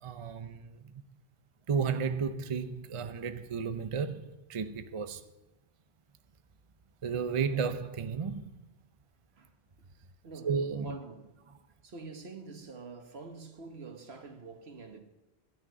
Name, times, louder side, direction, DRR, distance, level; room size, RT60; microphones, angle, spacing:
voice 1, 0.0-0.9 1.7-5.2 7.0-8.6 10.4-10.9, right 6 dB, 40° right, 0.6 m, -33 dB
voice 2, 10.2-11.3 11.8-15.0, right 3 dB, 75° right, 1.7 m, -46 dB
12.5 x 6.1 x 9.3 m
omnidirectional pair, 1.1 m